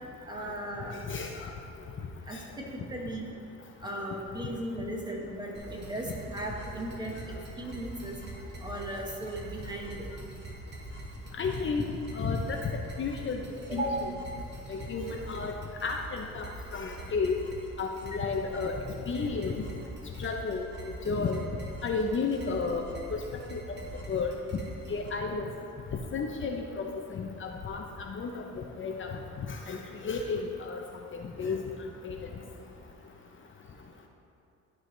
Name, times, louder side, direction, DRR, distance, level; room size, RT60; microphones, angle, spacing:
voice 1, 0.3-0.9 2.3-3.3 3.8-7.1 7.6-8.1 8.6-10.0 13.7-14.1, right 1 dB, 15° right, -1 dB, 1.4 m, -36 dB
sound 1, 5.5-25.1, right 1 dB, 35° right, 1.4 m, -44 dB
voice 2, 11.4-11.8 12.2-12.6 13.0-13.4 13.7-13.8 14.7-15.5 15.8-16.5 16.7-17.4 17.8-18.7 19.1-19.6 20.2-20.7 21.1-21.4 21.8-22.8 23.1-23.2 23.5-23.8 24.1-24.3 24.9-25.5 26.1-28.4 28.8-29.2 29.7-29.8 30.0-30.8 31.1-31.6 32.0-32.2, left 4 dB, 40° left, 2 dB, 0.7 m, -32 dB
12.5 x 4.8 x 3.2 m, 2.7 s
cardioid pair, 90°, 30 cm